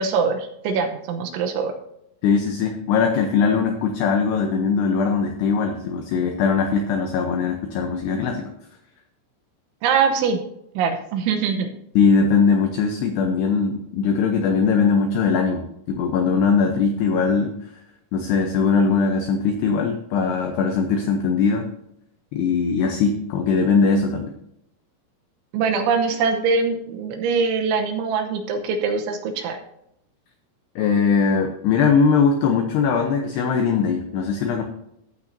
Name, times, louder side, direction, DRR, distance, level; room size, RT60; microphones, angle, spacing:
voice 1, 0.0-1.7 9.8-10.4 10.8-11.7 25.5-29.6, right 5 dB, 75° right, 5 dB, 3.1 m, -23 dB
voice 2, 2.2-8.5 12.0-17.5 18.1-21.7 22.3-24.3 30.8-34.6, left 5 dB, 80° left, 4 dB, 2.4 m, -20 dB
14.5 x 8.7 x 2.7 m, 0.77 s
omnidirectional pair, 5.9 m